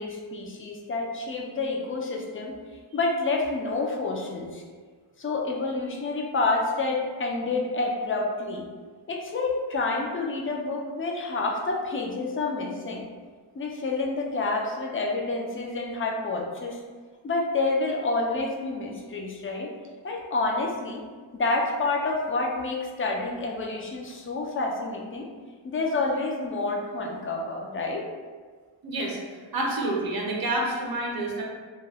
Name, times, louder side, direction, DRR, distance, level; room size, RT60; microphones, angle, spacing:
voice 1, 0.0-2.6 2.9-4.6 5.2-8.7 9.1-13.1 13.5-16.8 17.2-19.7 20.0-21.0 21.3-25.3 25.6-28.0, left 3 dB, 30° left, 0 dB, 0.4 m, -28 dB
voice 2, 28.8-29.2 29.5-31.4, right 2 dB, 50° right, -2 dB, 0.7 m, -28 dB
2.3 x 2.1 x 3.3 m, 1.5 s
wide cardioid pair, 90°, 47 cm